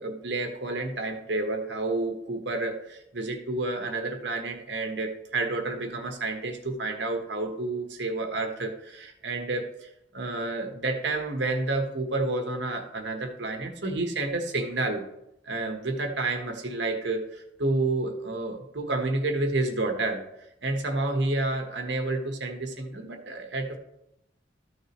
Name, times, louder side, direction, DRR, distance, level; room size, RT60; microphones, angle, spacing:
voice 1, 0.0-15.1 15.4-20.2 20.6-23.8, right 2 dB, 65° right, 4 dB, 1.2 m, -30 dB
13.5 x 6.4 x 3.1 m, 0.85 s
head